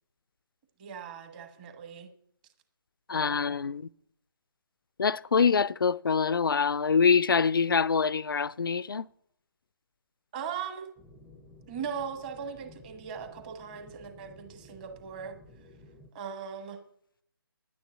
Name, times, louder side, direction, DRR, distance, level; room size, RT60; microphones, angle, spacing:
voice 1, 0.8-2.1 3.1-3.5 10.3-10.9 11.7-15.4 16.1-16.8, right 7 dB, 25° right, 1.3 m, -39 dB
voice 2, 3.1-3.9 5.0-9.1, left 5 dB, 65° left, 0.4 m, -25 dB
sound 1, 11.0-16.1, left 2 dB, ahead, 0.6 m, -54 dB
10.5 x 9.4 x 6.9 m
figure-of-eight pair, 145°, 12 cm